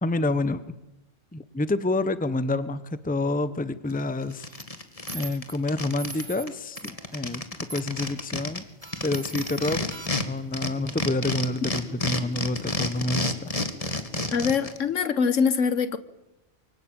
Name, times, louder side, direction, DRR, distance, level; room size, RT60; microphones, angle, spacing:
voice 1, 0.0-0.6 1.3-4.5 5.1-8.6 9.0-9.9 10.2-13.5, left 2 dB, 10° left, 0.9 m, -28 dB
sound 1, 3.9-4.0 4.3-6.2 6.5-6.6 6.8-10.2 10.5-14.8, left 2 dB, 30° left, 2.0 m, -30 dB
sound 2, 4.5-4.6 5.1-5.5 6.0-6.4 6.8-7.4 7.7-8.3 8.8-10.4, right 2 dB, 20° right, 1.4 m, -42 dB
voice 2, 14.3-16.0, left 6 dB, 90° left, 1.6 m, -23 dB
24.5 x 24.0 x 8.9 m
omnidirectional pair, 1.3 m